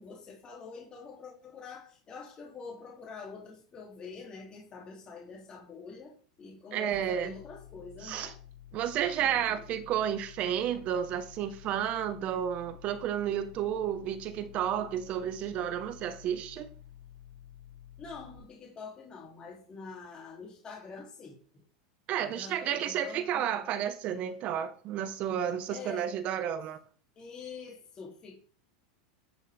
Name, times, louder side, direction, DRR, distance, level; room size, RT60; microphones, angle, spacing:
voice 1, 0.0-6.1 6.4-8.4 9.2-9.8 18.0-21.4 22.2-23.4 25.7-26.1 27.2-28.4, left 4 dB, 25° left, 2.8 m, -46 dB
voice 2, 6.7-7.4 8.0-8.3 8.7-16.7 22.1-26.8, right 9 dB, 45° right, 1.1 m, -31 dB
sound 1, 6.9-18.4, left 10 dB, 55° left, 4.1 m, -51 dB
10.5 x 6.5 x 3.5 m
supercardioid pair, 125°, 3 cm